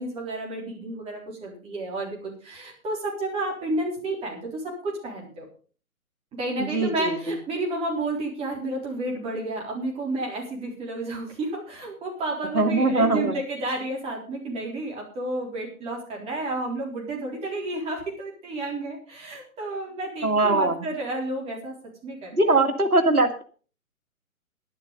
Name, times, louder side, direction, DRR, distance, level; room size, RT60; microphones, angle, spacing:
voice 1, 0.0-5.4 6.4-21.7 22.0-22.7, right 2 dB, 15° right, -1 dB, 3.9 m, -31 dB
voice 2, 6.6-7.4 12.5-13.4 20.2-20.9 22.3-23.4, right 2 dB, 85° right, 6 dB, 2.1 m, -22 dB
12.0 x 10.5 x 5.2 m, 0.41 s
figure-of-eight pair, 135°, 43 cm